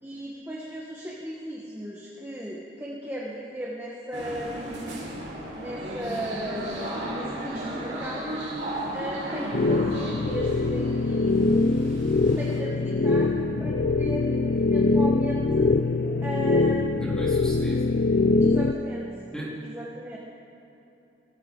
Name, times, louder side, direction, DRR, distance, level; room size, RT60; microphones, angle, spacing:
voice 1, 0.0-5.0 5.5-8.4 8.9-11.8 12.2-15.7 16.2-17.4 18.4-19.1 19.6-20.2, equal, 10° right, -5 dB, 1.2 m, -36 dB
sound 1, 4.1-12.6, right 1 dB, 75° right, 3.7 m, -35 dB
sound 2, 9.5-18.7, left 3 dB, 55° left, 0.4 m, -23 dB
voice 2, 17.0-17.9 19.3-19.6, right 1 dB, 5° left, -7 dB, 2.9 m, -36 dB
18.5 x 14.5 x 3.8 m, 3.0 s
head